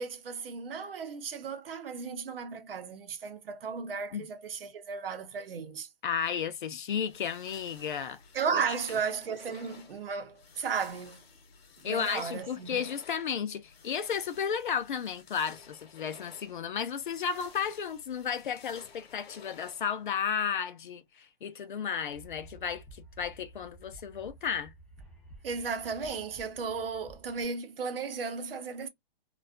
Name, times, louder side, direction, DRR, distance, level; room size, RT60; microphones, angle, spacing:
voice 1, 0.0-5.9 8.3-11.3 11.9-12.9 25.4-28.9, right 5 dB, 65° right, 0.7 m, -35 dB
voice 2, 6.0-8.2 8.5-8.7 11.8-24.7, left 7 dB, 55° left, 0.5 m, -33 dB
sound 1, 7.0-20.2, left 5 dB, 75° left, 0.9 m, -54 dB
sound 2, 22.1-27.4, right 2 dB, ahead, 0.5 m, -53 dB
2.4 x 2.3 x 2.3 m
hypercardioid pair, 175°, 30 cm